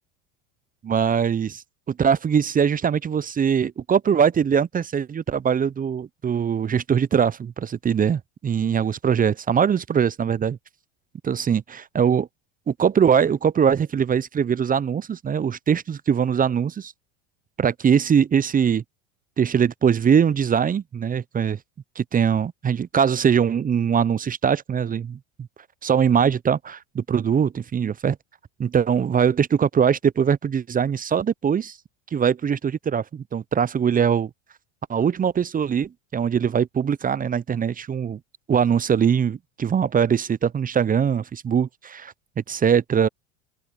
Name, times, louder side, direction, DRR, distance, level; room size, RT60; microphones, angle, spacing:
voice 1, 0.8-10.6 11.2-12.3 12.7-16.9 17.6-18.8 19.4-21.6 22.0-25.2 25.8-28.2 28.6-31.7 32.1-34.3 34.9-38.2 38.5-43.1, right 7 dB, 20° right, 0.7 m, -22 dB
open air
hypercardioid pair, 80°, 38 cm